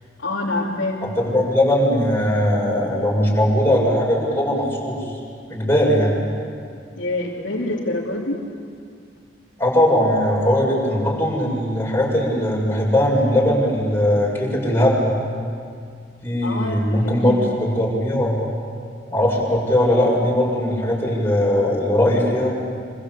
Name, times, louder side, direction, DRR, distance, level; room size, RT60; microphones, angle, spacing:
voice 1, 0.2-1.0 7.0-8.4 16.4-17.3, left 2 dB, 80° left, -5 dB, 3.1 m, -26 dB
voice 2, 1.0-5.0 5.5-6.2 9.6-15.2 16.2-18.5 19.1-22.5, left 1 dB, 15° left, -3 dB, 7.5 m, -19 dB
27.0 x 25.5 x 8.4 m, 2.2 s
head